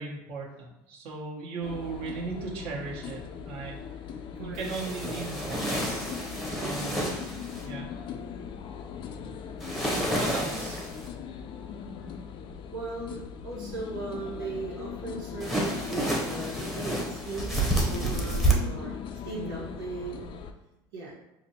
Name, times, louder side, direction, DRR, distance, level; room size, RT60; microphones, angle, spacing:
voice 1, 0.0-3.7 4.4-6.2 6.4-7.0 7.6-7.9 10.1-10.9 19.3-19.6, right 4 dB, 55° right, -4 dB, 1.2 m, -37 dB
sound 1, 1.6-20.5, left 7 dB, 45° left, 0.4 m, -40 dB
voice 2, 4.3-4.7 6.6-6.9 8.9-9.5 12.7-20.3 20.9-21.1, right 3 dB, 85° right, -5 dB, 1.0 m, -38 dB
sound 2, 4.5-7.7 9.6-11.1 15.4-18.5, right 1 dB, ahead, 0.8 m, -29 dB
5.0 x 2.1 x 2.8 m, 0.90 s
supercardioid pair, 100°, 12 cm